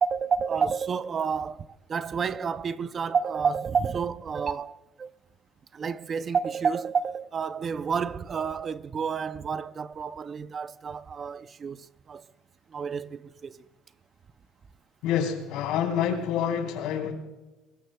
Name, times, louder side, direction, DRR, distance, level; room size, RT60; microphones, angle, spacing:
voice 1, 0.0-5.1 5.7-12.3 12.7-13.7, right 6 dB, 25° right, 0.4 m, -30 dB
voice 2, 15.0-17.1, left 8 dB, 70° left, 3.6 m, -27 dB
23.5 x 22.0 x 2.2 m
cardioid pair, 150°, 0 cm